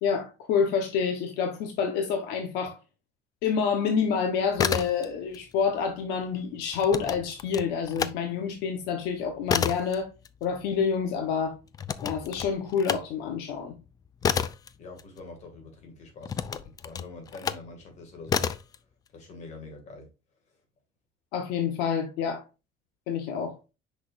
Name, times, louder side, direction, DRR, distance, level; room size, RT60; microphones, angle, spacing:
voice 1, 0.0-2.8 3.4-10.1 10.4-11.6 12.0-13.7 21.3-22.4 23.1-23.6, left 6 dB, 85° left, 1.2 m, -28 dB
sound 1, 4.4-5.4 5.7-8.2 8.6-15.6 16.2-17.7 18.3-18.8, left 7 dB, 25° left, 0.3 m, -31 dB
voice 2, 14.8-18.4 19.1-20.1, left 3 dB, 45° left, 2.4 m, -45 dB
6.2 x 5.8 x 2.6 m
cardioid pair, 160°, 16 cm